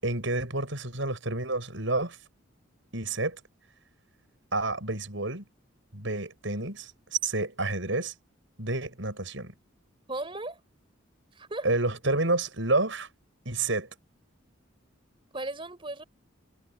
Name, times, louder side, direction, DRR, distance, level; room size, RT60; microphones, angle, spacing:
voice 1, 0.0-2.2 2.9-3.4 4.5-5.4 5.9-6.9 7.2-8.1 8.6-9.5 11.6-13.1 13.5-13.9, right 2 dB, 70° right, 6.9 m, -29 dB
voice 2, 10.1-10.6 11.4-11.7 15.3-16.0, right 2 dB, 25° right, 3.9 m, -36 dB
head